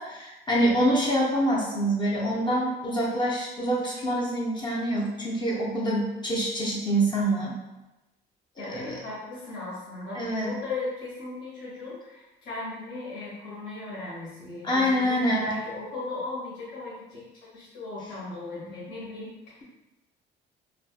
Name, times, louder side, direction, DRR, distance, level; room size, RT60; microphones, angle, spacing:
voice 1, 0.0-7.6 8.7-9.0 10.1-10.5 14.6-15.5, right 1 dB, 25° left, -5 dB, 0.5 m, -26 dB
voice 2, 8.6-19.6, left 2 dB, 80° left, -8 dB, 1.3 m, -37 dB
2.5 x 2.4 x 2.3 m, 1.0 s
cardioid pair, 125°, 18 cm